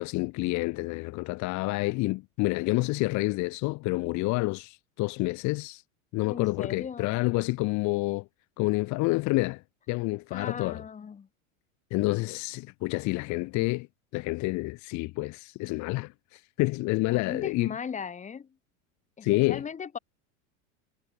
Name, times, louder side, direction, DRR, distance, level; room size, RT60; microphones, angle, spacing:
voice 1, 0.0-5.8 6.1-8.2 8.6-9.6 9.9-10.8 11.9-13.9 14.1-17.8 19.2-19.6, left 23 dB, 45° left, 2.3 m, -28 dB
voice 2, 6.3-7.2 10.3-11.3 17.1-18.5 19.2-20.0, left 6 dB, 20° left, 3.5 m, -38 dB
supercardioid pair, 135°, 39 cm